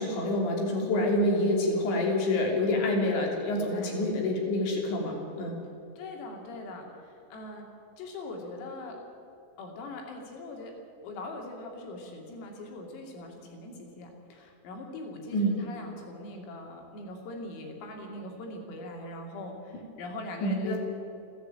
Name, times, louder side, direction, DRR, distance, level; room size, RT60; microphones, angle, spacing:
voice 1, 0.0-5.6 15.3-15.6 20.4-20.8, left 1 dB, 65° left, 0 dB, 5.3 m, -27 dB
voice 2, 6.0-7.7 8.0-9.0 9.6-10.7 11.0-20.8, left 2 dB, 85° left, 1 dB, 5.7 m, -41 dB
29.5 x 10.5 x 9.1 m, 2.7 s
omnidirectional pair, 5.9 m